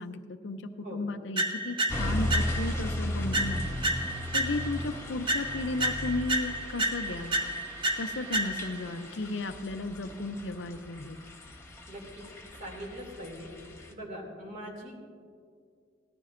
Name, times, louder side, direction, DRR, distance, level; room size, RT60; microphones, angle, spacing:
voice 1, 0.0-3.8 4.3-7.4 8.0-11.2, left 2 dB, 65° left, 7 dB, 0.6 m, -34 dB
sound 1, 1.4-2.8 3.3-4.9 5.3-8.9, right 1 dB, 25° right, 0.9 m, -31 dB
sound 2, 1.9-13.9, left 1 dB, 15° left, 1.1 m, -36 dB
voice 2, 11.9-12.2 12.5-13.5 13.9-14.9, equal, 45° right, -1 dB, 2.6 m, -42 dB
18.0 x 14.5 x 2.6 m, 2.3 s
head